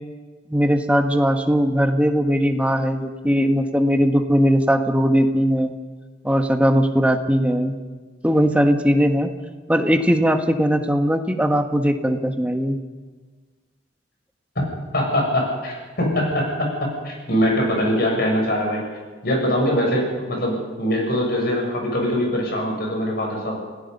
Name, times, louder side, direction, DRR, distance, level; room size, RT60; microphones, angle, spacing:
voice 1, 0.5-5.7 6.2-7.8 8.2-9.3 9.7-12.8, equal, 5° right, 5 dB, 1.3 m, -19 dB
voice 2, 14.9-18.8 19.2-23.6, equal, 60° left, 0 dB, 7.1 m, -22 dB
28.5 x 17.5 x 5.5 m, 1.4 s
head